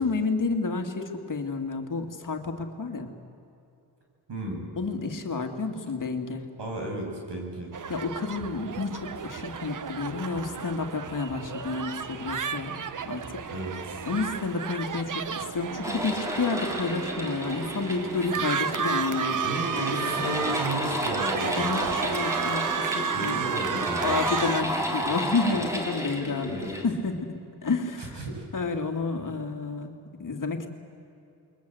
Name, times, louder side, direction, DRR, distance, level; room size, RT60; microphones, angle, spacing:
voice 1, 0.0-3.1 4.8-6.5 7.9-12.8 13.0-13.2 14.1-19.4 19.7-19.9 21.5-22.6 22.9-23.4 24.0-26.6 26.8-28.2 28.5-30.7, left 4 dB, 45° left, 5 dB, 2.5 m, -30 dB
voice 2, 4.3-4.6 6.6-7.7 13.5-14.0 19.4-21.9 23.1-24.2 26.5-26.7 28.0-28.4, right 1 dB, 75° right, 0 dB, 7.7 m, -33 dB
sound 1, 7.7-24.6, right 7 dB, 45° right, 1.0 m, -32 dB
sound 2, 15.8-26.9, equal, 5° right, 3.4 m, -32 dB
28.0 x 22.5 x 7.9 m, 2.7 s
wide cardioid pair, 110°, 42 cm